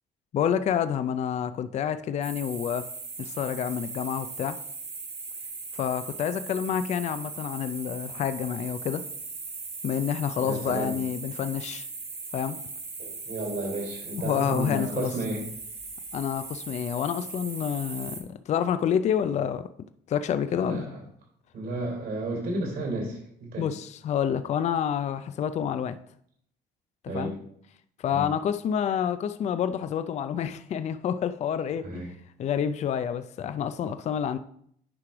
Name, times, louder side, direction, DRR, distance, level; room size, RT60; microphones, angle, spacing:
voice 1, 0.3-2.9 3.2-4.6 5.7-9.0 9.8-11.9 12.3-12.6 14.2-15.1 16.1-19.7 20.1-20.9 23.6-26.0 27.1-27.3 28.0-32.0 32.4-34.4, left 8 dB, 40° left, 0.4 m, -28 dB
sound 1, 2.2-18.2, right 4 dB, 35° right, 1.6 m, -39 dB
voice 2, 10.4-11.0 13.0-15.4 20.5-21.0 21.5-23.7 27.1-27.4 28.1-28.3 31.8-32.1, right 2 dB, 65° right, 3.6 m, -32 dB
9.7 x 3.2 x 5.9 m
cardioid pair, 110°, 17 cm